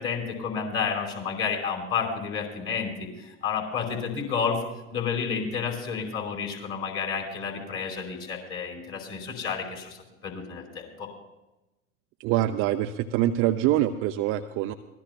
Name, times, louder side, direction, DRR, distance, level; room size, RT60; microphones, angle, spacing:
voice 1, 0.0-4.6 4.9-10.0 10.2-11.1, left 6 dB, 30° left, 2 dB, 4.9 m, -30 dB
voice 2, 12.2-14.7, right 13 dB, 30° right, 7 dB, 0.5 m, -25 dB
24.5 x 18.0 x 2.3 m, 0.98 s
figure-of-eight pair, 90°, 41 cm